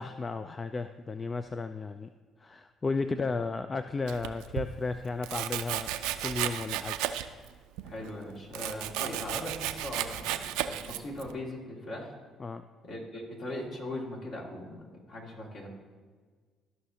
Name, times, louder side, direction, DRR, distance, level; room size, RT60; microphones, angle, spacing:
voice 1, 0.0-2.1 2.4-5.9 6.2-7.0 12.4-12.6, left 4 dB, 35° left, 10 dB, 0.3 m, -34 dB
Domestic sounds home sounds, 4.1-4.7 5.2-7.5 7.8-11.3, right 12 dB, 80° right, 0.4 m, -34 dB
voice 2, 7.8-12.1 12.8-15.7, left 1 dB, 60° left, -2 dB, 2.3 m, -40 dB
14.0 x 5.6 x 2.8 m, 1.5 s
hypercardioid pair, 55°, 0 cm